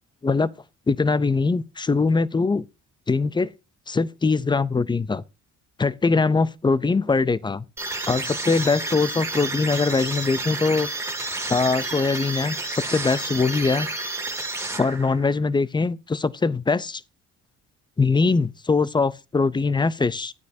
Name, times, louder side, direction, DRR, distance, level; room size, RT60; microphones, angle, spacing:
voice 1, 0.9-2.7 3.1-3.5 3.9-5.2 5.8-7.6 8.1-10.9 11.5-13.9 14.8-17.0 18.0-20.3, left 4 dB, 15° left, 0.5 m, -22 dB
sound 1, 7.8-15.3, right 2 dB, 10° right, 2.2 m, -30 dB
12.0 x 9.2 x 2.7 m
cardioid pair, 90°, 30 cm